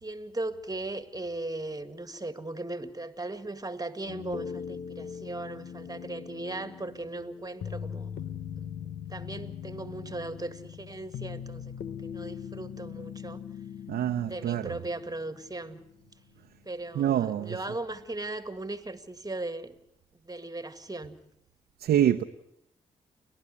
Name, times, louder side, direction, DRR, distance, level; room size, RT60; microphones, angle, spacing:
voice 1, 0.0-8.1 9.1-13.4 14.2-15.8 16.7-19.7 20.2-21.2, right 2 dB, 25° right, 10 dB, 2.1 m, -38 dB
sound 1, 4.1-16.1 16.4-16.5, left 8 dB, 80° left, 1.2 m, -41 dB
voice 2, 13.9-14.7 16.9-17.6 21.8-22.2, right 11 dB, 85° right, 5 dB, 0.8 m, -26 dB
29.5 x 12.0 x 9.8 m, 0.76 s
supercardioid pair, 50°, 16 cm